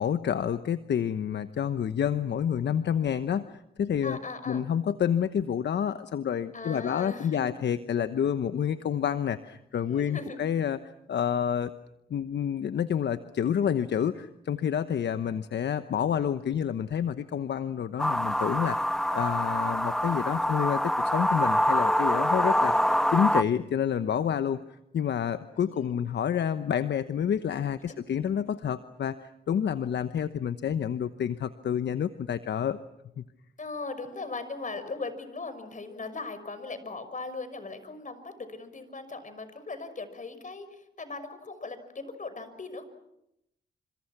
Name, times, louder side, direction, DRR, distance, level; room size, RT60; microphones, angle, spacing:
voice 1, 0.0-4.2 4.5-10.8 11.1-11.7 12.1-22.7 23.1-24.6 24.9-32.8 33.2-33.3, left 8 dB, 65° left, 11 dB, 1.0 m, -29 dB
voice 2, 4.0-4.7 6.5-7.5 9.8-10.4 22.4-22.9 25.6-25.9 27.9-28.0 33.6-42.8, left 3 dB, 40° left, 11 dB, 6.0 m, -39 dB
sound 1, 18.0-23.4, equal, 5° left, 0.9 m, -25 dB
29.5 x 27.0 x 6.0 m, 0.82 s
supercardioid pair, 55°, 19 cm